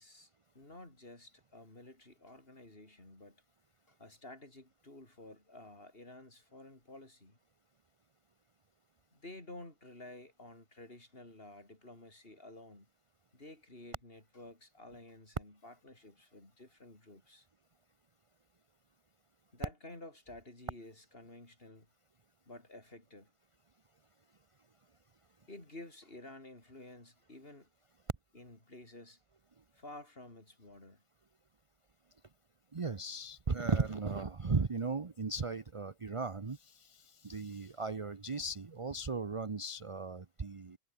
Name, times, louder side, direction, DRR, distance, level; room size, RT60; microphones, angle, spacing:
voice 1, 0.0-3.4 3.9-7.4 9.1-12.9 13.3-17.5 19.5-21.9 22.5-23.3 25.5-27.7 28.3-29.2 29.7-31.0, left 2 dB, 45° left, 5.4 m, -52 dB
voice 2, 32.7-40.8, right 4 dB, 30° right, 0.8 m, -36 dB
omnidirectional pair, 1.3 m